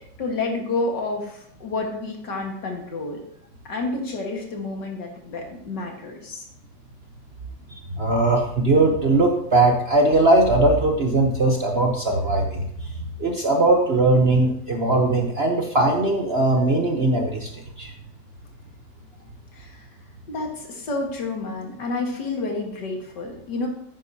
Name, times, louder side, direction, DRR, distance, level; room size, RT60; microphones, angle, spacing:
voice 1, 0.2-3.2 3.6-6.5 19.5-19.9 20.3-23.7, left 3 dB, 70° left, 1 dB, 2.3 m, -29 dB
voice 2, 7.9-12.9 13.2-17.9, right 2 dB, 45° right, 2 dB, 0.9 m, -20 dB
11.0 x 9.0 x 2.8 m, 0.70 s
omnidirectional pair, 1.9 m